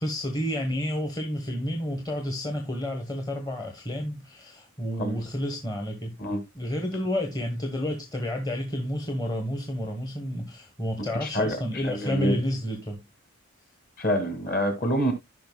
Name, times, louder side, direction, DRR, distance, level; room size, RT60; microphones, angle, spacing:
voice 1, 0.0-6.2 6.5-13.0, equal, 15° left, 1.1 m, -30 dB
voice 2, 11.2-12.4 14.0-15.1, equal, 40° left, 2.1 m, -27 dB
15.0 x 5.3 x 2.2 m
head